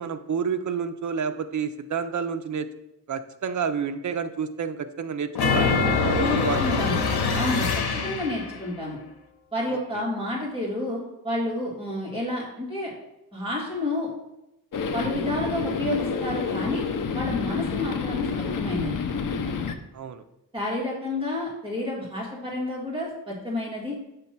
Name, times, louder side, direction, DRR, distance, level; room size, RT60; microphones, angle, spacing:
voice 1, 0.0-2.7 3.1-6.8 9.7-10.0 19.9-20.2, right 6 dB, 50° right, 9 dB, 0.5 m, -30 dB
sound 1, 5.3-8.5, left 4 dB, 85° left, 0.9 m, -24 dB
voice 2, 6.2-7.0 7.4-9.0 9.5-12.9 13.3-14.1 14.9-16.8 17.1-19.0 20.5-23.9, left 2 dB, 15° right, -5 dB, 2.2 m, -30 dB
sound 2, 14.7-19.7, left 5 dB, 55° left, 0.6 m, -29 dB
7.0 x 3.1 x 5.9 m, 0.89 s
wide cardioid pair, 125°, 37 cm